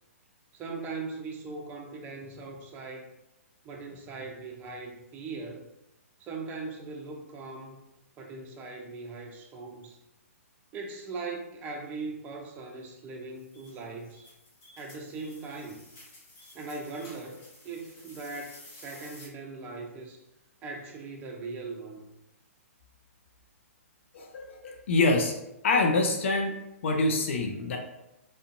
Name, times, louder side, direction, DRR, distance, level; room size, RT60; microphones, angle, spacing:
voice 1, 0.5-3.1 3.6-5.7 6.2-7.8 8.2-10.0 10.7-14.2 14.8-15.8 16.5-17.4 17.6-20.2 20.6-22.0, right 3 dB, 20° right, 1 dB, 0.4 m, -40 dB
sound 1, 13.3-19.3, left 1 dB, 30° left, 0.9 m, -52 dB
voice 2, 24.1-25.3 25.6-26.5 26.8-27.8, left 3 dB, 55° left, 2 dB, 0.4 m, -25 dB
2.5 x 2.1 x 2.5 m, 0.90 s
figure-of-eight pair, 125°, 8 cm